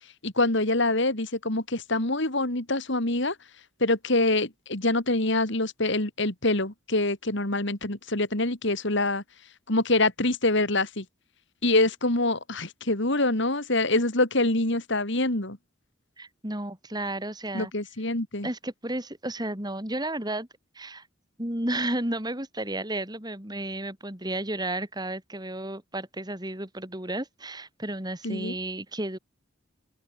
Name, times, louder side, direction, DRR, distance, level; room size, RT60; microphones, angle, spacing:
voice 1, 0.2-3.3 3.8-9.2 9.7-11.0 11.6-15.6 17.5-18.5 28.2-28.5, left 2 dB, 60° left, 3.3 m, -25 dB
voice 2, 16.2-17.7 18.4-20.5 20.8-21.1 21.4-29.2, right 1 dB, 20° right, 3.9 m, -32 dB
open air
head